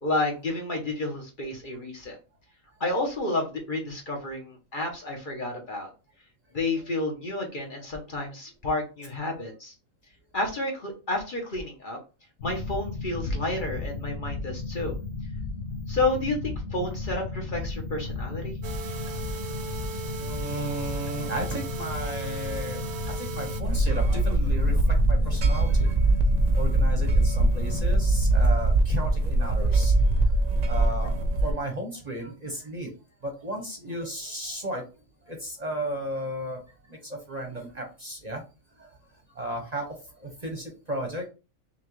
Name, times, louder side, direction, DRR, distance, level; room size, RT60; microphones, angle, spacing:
voice 1, 0.0-2.2 2.8-5.9 6.5-9.7 10.3-12.0 12.4-15.0 15.9-18.6, left 2 dB, 45° left, 1 dB, 1.0 m, -30 dB
sound 1, 12.4-28.4, left 3 dB, 65° left, 1.1 m, -34 dB
sound 2, 18.6-23.6, right 7 dB, 65° right, 0.9 m, -38 dB
voice 2, 20.2-25.9 26.5-30.4 30.7-32.9 33.2-34.8 35.3-36.6 36.9-38.4 38.8-39.0 39.3-41.3, right 1 dB, 35° right, 2 dB, 0.9 m, -34 dB
sound 3, 23.6-31.5, right 2 dB, 80° right, 0.3 m, -22 dB
5.7 x 2.3 x 3.0 m, 0.31 s
omnidirectional pair, 1.4 m